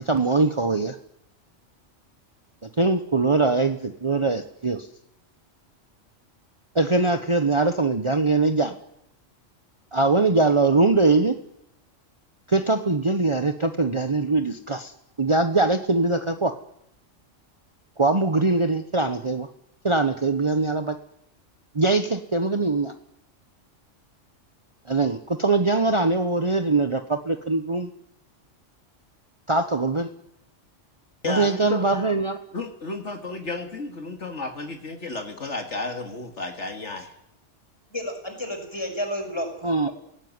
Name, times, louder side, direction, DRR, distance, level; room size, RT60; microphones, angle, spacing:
voice 1, 0.0-1.0 2.6-4.9 6.7-8.7 9.9-11.4 12.5-14.9 15.2-16.5 18.0-19.5 19.8-21.0 21.7-22.9 24.9-27.9 29.5-30.1 31.3-32.4 39.6-39.9, right 3 dB, 25° right, 8 dB, 1.0 m, -22 dB
voice 2, 31.2-32.0 32.5-37.1, left 3 dB, 65° left, 5 dB, 2.4 m, -32 dB
voice 3, 37.9-39.5, equal, 20° left, 4 dB, 5.7 m, -30 dB
25.0 x 17.5 x 9.6 m, 0.80 s
omnidirectional pair, 1.3 m